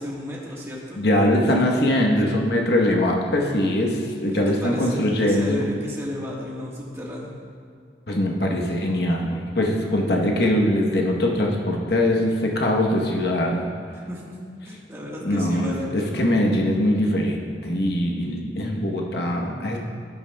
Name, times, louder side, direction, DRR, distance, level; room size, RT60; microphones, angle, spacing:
voice 1, 0.0-1.5 4.3-7.3 13.9-14.3 14.6-16.2, left 1 dB, 15° right, -4 dB, 1.3 m, -34 dB
voice 2, 1.0-5.7 8.1-13.7 15.2-19.8, left 1 dB, 55° left, 0 dB, 1.0 m, -22 dB
12.0 x 11.0 x 2.2 m, 2.3 s
head